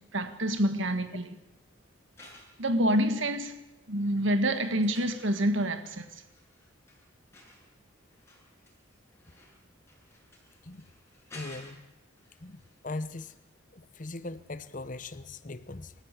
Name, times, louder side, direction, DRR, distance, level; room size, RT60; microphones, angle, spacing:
voice 1, 0.1-1.4 2.6-3.5 3.9-6.1, right 1 dB, 70° right, 1.9 m, -27 dB
sound 1, 2.0-3.6 4.0-13.0 13.3-13.4, left 2 dB, 15° left, 6.9 m, -54 dB
voice 2, 11.3-11.9 12.4-13.4 13.7-15.9, left 2 dB, 40° left, 0.9 m, -40 dB
27.5 x 14.5 x 8.3 m
head